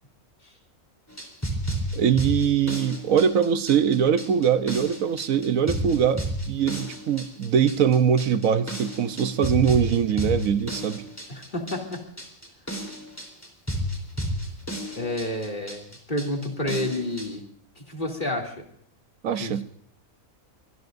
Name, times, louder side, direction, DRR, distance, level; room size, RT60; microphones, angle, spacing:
sound 1, 1.1-17.3, equal, 10° left, 3.7 m, -32 dB
voice 1, 1.9-11.0 19.2-19.6, right 8 dB, 80° right, 11 dB, 1.2 m, -22 dB
voice 2, 11.3-12.0 14.9-17.4 17.9-18.6 19.3-19.5, left 1 dB, 35° left, 0 dB, 3.0 m, -30 dB
25.0 x 20.0 x 2.6 m, 0.64 s
omnidirectional pair, 1.4 m